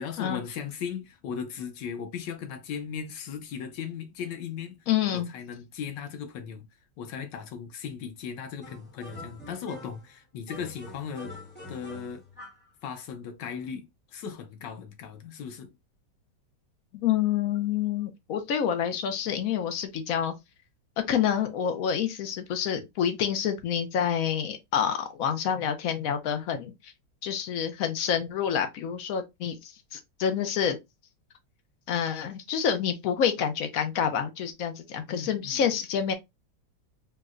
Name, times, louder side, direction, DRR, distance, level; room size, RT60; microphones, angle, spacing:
voice 1, 0.0-4.8 5.1-6.7 7.0-11.4 11.7-12.2 12.8-15.7 35.1-35.6, left 7 dB, 85° left, 1.4 m, -37 dB
voice 2, 4.9-5.3 16.9-20.3 21.1-26.9 27.2-30.8 31.9-36.1, left 8 dB, 70° left, 0.8 m, -28 dB
sound 1, 8.6-10.1 10.5-12.7, left 1 dB, 10° left, 0.8 m, -45 dB
4.5 x 2.1 x 2.4 m
omnidirectional pair, 1.9 m